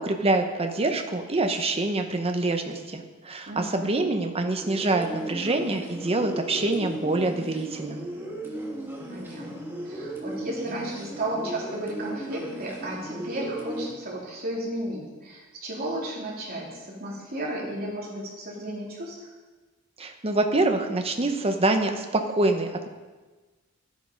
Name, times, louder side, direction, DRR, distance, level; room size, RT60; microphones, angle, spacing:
voice 1, 0.0-8.1 20.0-22.9, right 2 dB, 25° right, 5 dB, 0.9 m, -25 dB
sound 1, 4.6-13.9, right 1 dB, 10° right, 1.8 m, -36 dB
voice 2, 9.1-9.5 9.8-19.3, right 1 dB, 45° right, -4 dB, 3.0 m, -33 dB
12.5 x 8.3 x 5.2 m, 1.3 s
head